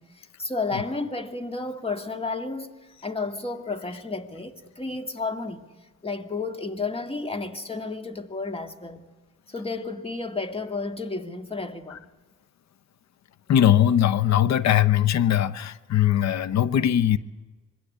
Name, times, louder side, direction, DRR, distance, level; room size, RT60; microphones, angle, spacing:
voice 1, 0.0-2.8 3.0-5.7 6.0-9.1 9.5-12.1, left 3 dB, 20° left, 1.9 m, -32 dB
voice 2, 13.5-17.2, left 11 dB, 65° left, 0.9 m, -20 dB
25.5 x 21.0 x 8.3 m
cardioid pair, 90°, 30 cm